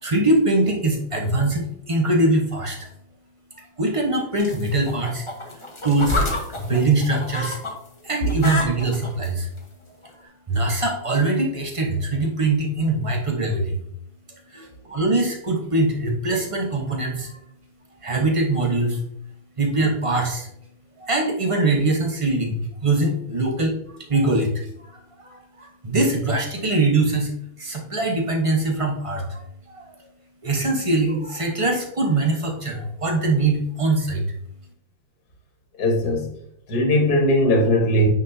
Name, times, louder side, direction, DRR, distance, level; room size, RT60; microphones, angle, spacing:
voice 1, 0.0-2.9 3.5-5.3 5.8-7.6 8.0-9.5 10.2-13.8 14.5-17.4 18.0-19.0 19.6-20.5 21.0-27.3 27.6-30.1 30.4-34.3, right 2 dB, 30° right, 1 dB, 0.6 m, -23 dB
sound 1, 4.4-7.7 8.0-9.3 10.0-10.1, left 2 dB, 20° left, 0.8 m, -28 dB
voice 2, 35.8-36.3 36.7-38.1, equal, 45° left, 1 dB, 1.9 m, -19 dB
9.4 x 5.3 x 2.7 m, 0.74 s
omnidirectional pair, 2.4 m